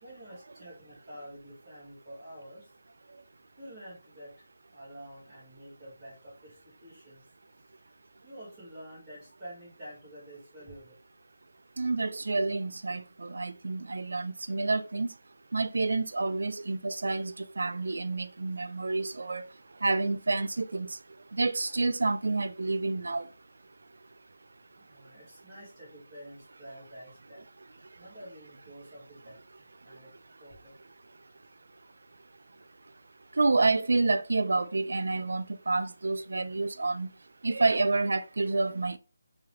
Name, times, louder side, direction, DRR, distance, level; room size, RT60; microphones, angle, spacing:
voice 1, 0.0-2.7 3.6-7.2 7.8-10.9 24.8-27.4 28.0-30.1 30.4-30.7, equal, 5° right, 2.0 m, -48 dB
voice 2, 11.8-15.1 15.5-19.5 19.8-21.0 21.3-23.3 33.3-37.1 37.4-39.0, right 3 dB, 60° right, 0.3 m, -28 dB
3.5 x 3.1 x 3.0 m
figure-of-eight pair, 180°, 0 cm